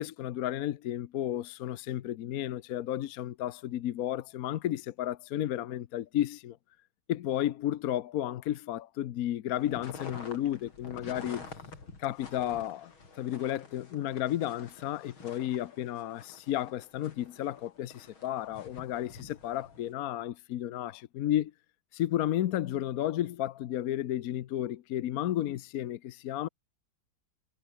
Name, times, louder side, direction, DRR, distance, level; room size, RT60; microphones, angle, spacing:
voice 1, 0.0-6.6 7.1-11.4 12.0-21.5 21.9-26.5, left 12 dB, 65° left, 0.9 m, -33 dB
sound 1, 9.6-19.9, left 4 dB, 85° left, 5.0 m, -49 dB
omnidirectional pair, 2.2 m